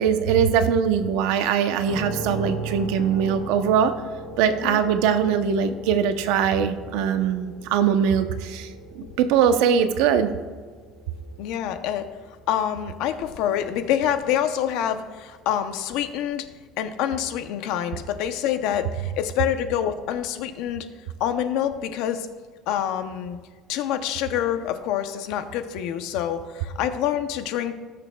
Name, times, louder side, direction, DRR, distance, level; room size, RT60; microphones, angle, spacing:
voice 1, 0.0-3.9 4.4-8.7 8.9-10.3, right 7 dB, 75° right, 9 dB, 0.7 m, -21 dB
sound 1, 1.9-15.6, right 2 dB, 25° left, 3.0 m, -39 dB
voice 2, 11.4-12.1 12.5-16.5 16.8-20.9 21.2-22.3 22.7-23.4 23.7-27.7, left 10 dB, 65° left, 9 dB, 0.7 m, -26 dB
18.5 x 6.7 x 2.3 m, 1.5 s
cardioid pair, 175°, 0 cm